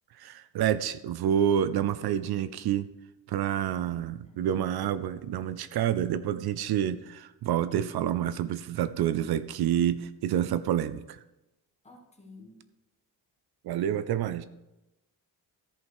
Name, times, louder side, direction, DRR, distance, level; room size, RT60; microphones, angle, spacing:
voice 1, 0.2-2.9 3.3-11.2 13.6-14.4, right 10 dB, 70° right, 14 dB, 0.5 m, -28 dB
voice 2, 3.6-4.5 11.8-12.6, left 2 dB, 15° left, 1 dB, 1.5 m, -53 dB
13.5 x 5.5 x 4.8 m, 0.96 s
wide cardioid pair, 175°, 40 cm